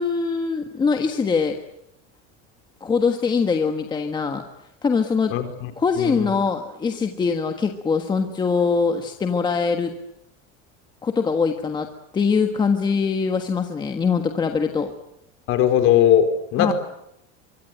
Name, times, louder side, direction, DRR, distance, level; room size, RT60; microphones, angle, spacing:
voice 1, 0.0-1.6 2.8-4.4 4.8-5.3 5.8-9.9 11.0-14.9 16.6-16.7, left 5 dB, 15° left, 5 dB, 1.4 m, -22 dB
voice 2, 6.0-6.3 15.5-16.3 16.5-16.7, left 11 dB, 40° left, 8 dB, 4.3 m, -18 dB
24.5 x 23.5 x 8.9 m, 0.81 s
cardioid pair, 175°, 33 cm